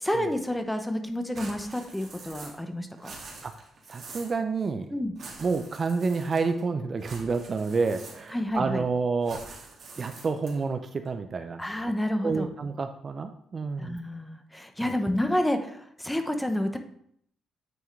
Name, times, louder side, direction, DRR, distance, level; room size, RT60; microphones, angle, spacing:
voice 1, 0.0-3.1 4.9-5.2 8.3-8.9 11.6-12.5 13.8-16.8, left 1 dB, 5° left, 6 dB, 0.8 m, -29 dB
sound 1, 1.3-2.7 2.9-4.4 5.2-6.6 7.0-8.5 9.2-10.7, right 3 dB, 60° right, 1.8 m, -45 dB
voice 2, 3.9-4.9 5.4-9.4 10.0-11.6 12.2-14.0 14.8-15.0, right 4 dB, 40° right, 8 dB, 0.5 m, -29 dB
9.1 x 3.5 x 3.2 m, 0.68 s
cardioid pair, 90°, 0 cm